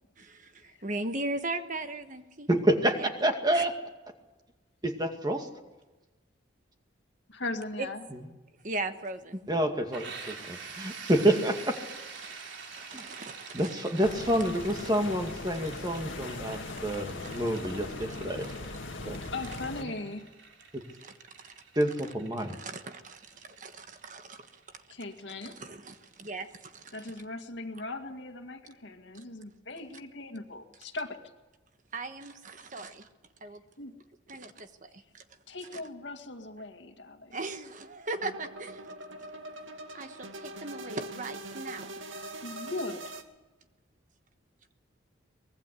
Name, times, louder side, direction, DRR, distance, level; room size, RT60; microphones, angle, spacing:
voice 1, 0.2-2.5 2.9-3.1 3.5-3.6 7.8-7.9 8.6-9.4 12.2-12.3 12.5-13.7 14.2-14.4 17.2-17.7 21.0-21.5 22.4-24.6 25.4-27.0 31.9-33.1 33.4-33.6 34.3-35.2 35.7-35.8 37.3-38.9 39.9-41.9, right 2 dB, 40° right, 8 dB, 1.3 m, -39 dB
voice 2, 2.5-3.7 4.8-5.5 9.5-11.7 12.9-13.0 13.5-18.5 19.0-19.2 20.7-20.8 21.8-22.6, right 1 dB, 20° right, 5 dB, 2.2 m, -28 dB
voice 3, 7.3-8.0 13.0-13.1 19.3-20.3 24.9-25.6 26.9-31.2 33.8-34.0 35.5-37.4 42.4-43.2, left 2 dB, 65° left, 5 dB, 2.2 m, -39 dB
sound 1, 9.9-25.5, right 5 dB, 70° right, 3.3 m, -47 dB
sound 2, 14.0-19.8, left 2 dB, 90° left, 2.0 m, -40 dB
sound 3, 38.1-43.2, right 1 dB, 85° right, 2.2 m, -42 dB
24.0 x 20.0 x 8.4 m, 1.1 s
head